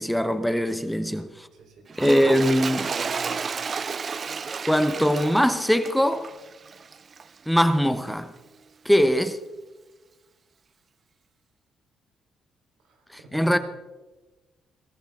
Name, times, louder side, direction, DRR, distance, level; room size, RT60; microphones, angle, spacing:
voice 1, 0.0-1.5 2.0-2.9 4.7-6.3 7.5-8.3 8.8-9.4 13.1-13.6, equal, 5° left, 0.9 m, -22 dB
voice 2, 1.5-1.9 2.4-2.7 3.0-3.5 3.9-4.2 12.8-13.5, right 3 dB, 80° right, 3.8 m, -45 dB
Toilet flush, 1.9-7.4 8.1-8.2, right 5 dB, 40° right, 0.5 m, -32 dB
21.5 x 14.0 x 3.6 m
cardioid pair, 90°, 0 cm